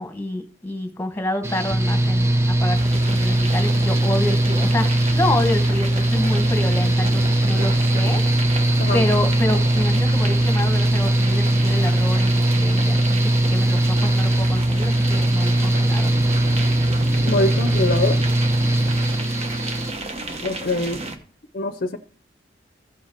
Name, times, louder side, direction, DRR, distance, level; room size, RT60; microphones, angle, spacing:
voice 1, 0.0-8.2 8.9-16.1 18.6-18.8, left 1 dB, 15° left, 1.2 m, -28 dB
Mechanical fan, 1.4-19.9, right 1 dB, 15° right, 0.6 m, -20 dB
sound 1, 2.7-21.2, right 2 dB, 35° right, 1.0 m, -33 dB
voice 2, 17.3-18.2 20.4-21.0 21.5-22.0, left 2 dB, 50° left, 0.6 m, -23 dB
14.5 x 5.7 x 4.4 m
head